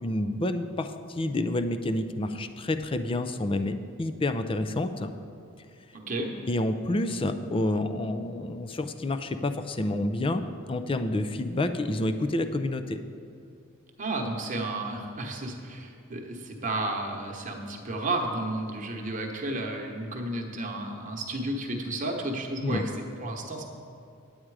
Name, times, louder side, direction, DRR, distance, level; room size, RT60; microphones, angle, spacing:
voice 1, 0.0-5.1 6.5-10.4 10.7-13.0 22.6-22.8, left 1 dB, 25° left, 10 dB, 0.4 m, -29 dB
voice 2, 5.9-6.3 14.0-22.9 23.2-23.6, right 2 dB, 40° right, 1 dB, 1.1 m, -32 dB
10.0 x 8.8 x 4.8 m, 2.5 s
head